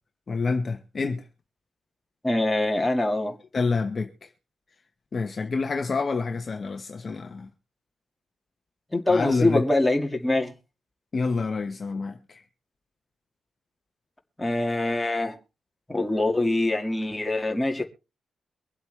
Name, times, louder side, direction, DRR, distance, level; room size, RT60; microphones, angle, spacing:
voice 1, 0.3-1.2 3.5-4.1 5.1-7.5 9.1-9.6 11.1-12.2, left 4 dB, 35° left, 1.1 m, -27 dB
voice 2, 2.2-3.4 8.9-10.5 14.4-15.4 15.9-17.8, left 2 dB, 10° left, 1.9 m, -24 dB
24.0 x 8.1 x 3.3 m
wide cardioid pair, 145°, 0 cm